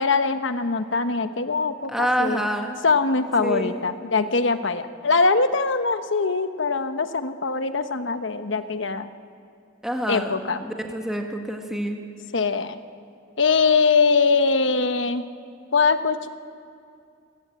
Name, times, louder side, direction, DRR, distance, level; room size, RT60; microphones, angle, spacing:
voice 1, 0.0-2.4 2.8-9.1 10.1-10.6 12.3-12.8 13.4-15.2 15.7-16.3, left 4 dB, 65° left, 10 dB, 1.1 m, -22 dB
voice 2, 1.9-2.8 3.4-3.8 9.8-12.0, equal, ahead, 2 dB, 1.8 m, -27 dB
27.0 x 18.0 x 8.8 m, 2.4 s
head